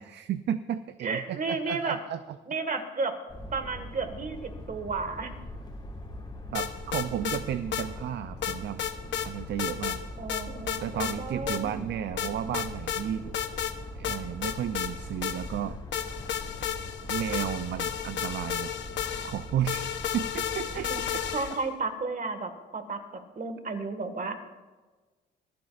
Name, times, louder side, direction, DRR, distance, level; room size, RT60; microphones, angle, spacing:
voice 1, 0.0-2.2 6.5-8.8 9.2-10.0 10.8-13.3 14.0-15.8 17.1-18.7 19.2-19.9 20.1-20.9, right 10 dB, 60° right, 12 dB, 0.5 m, -33 dB
voice 2, 1.0-2.0 2.5-3.2 3.5-5.3 10.2-11.9 20.7-21.0 21.3-24.4, right 4 dB, 45° right, 7 dB, 1.8 m, -33 dB
sound 1, 3.3-21.4, left 1 dB, 20° left, 2.7 m, -42 dB
sound 2, 6.5-7.4 7.7-7.9 8.4-9.3 9.6-10.0 10.3-11.2 11.5-11.6 12.2-13.0 13.3-13.7 14.0-15.6 15.9-21.7, left 10 dB, 70° left, 1.0 m, -32 dB
25.0 x 12.0 x 2.5 m, 1.3 s
cardioid pair, 90°, 20 cm